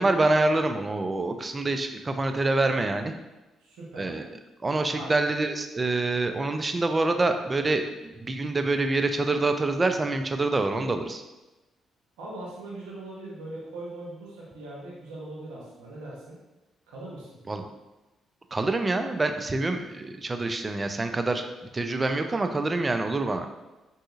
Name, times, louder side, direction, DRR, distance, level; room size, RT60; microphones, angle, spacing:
voice 1, 0.0-3.1 4.0-4.3 4.6-7.8 8.2-11.2 17.5-17.7 18.5-21.5 21.7-23.5, right 2 dB, 30° right, 7 dB, 0.3 m, -26 dB
voice 2, 3.6-4.2 4.9-5.1 12.2-16.4 16.9-17.4, right 2 dB, 85° right, -5 dB, 0.7 m, -40 dB
3.7 x 2.7 x 2.4 m, 1.1 s
supercardioid pair, 55°, 0 cm